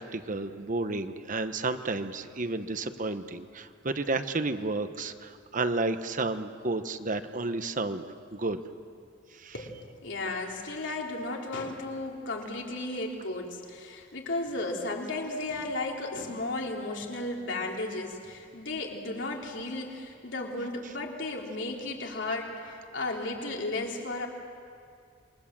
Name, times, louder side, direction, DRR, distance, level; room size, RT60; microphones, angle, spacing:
voice 1, 0.0-8.0 8.3-8.6 9.3-9.5, right 3 dB, 45° right, 10 dB, 1.1 m, -31 dB
voice 2, 9.5-24.3, left 2 dB, 70° left, 0 dB, 3.4 m, -34 dB
27.5 x 22.5 x 7.5 m, 2.3 s
head